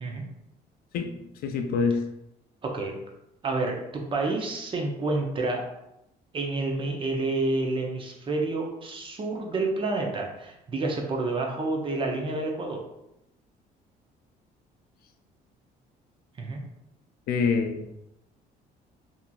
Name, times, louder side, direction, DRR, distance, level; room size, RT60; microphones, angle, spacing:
voice 1, 0.9-2.1 17.3-17.9, left 5 dB, 65° left, 5 dB, 0.4 m, -26 dB
voice 2, 2.6-3.0 3.4-5.7 6.3-12.8 16.4-16.6, right 2 dB, 30° right, 1 dB, 0.5 m, -29 dB
2.8 x 2.5 x 2.3 m, 0.86 s
cardioid pair, 110°, 17 cm